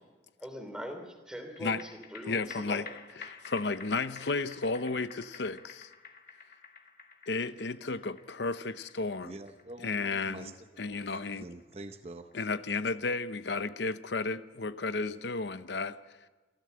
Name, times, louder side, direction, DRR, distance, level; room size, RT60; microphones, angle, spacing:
voice 1, 0.4-2.9, equal, 5° right, 2.9 m, -42 dB
sound 1, 1.6-14.2 14.6-14.7, left 5 dB, 50° left, 1.7 m, -51 dB
voice 2, 2.3-2.9 3.2-5.9 7.3-9.4 9.8-11.5 12.3-16.0, left 3 dB, 75° left, 0.8 m, -33 dB
voice 3, 9.3-10.5 10.9-11.0 11.4-12.3, right 2 dB, 35° right, 0.7 m, -45 dB
27.5 x 13.0 x 7.7 m
head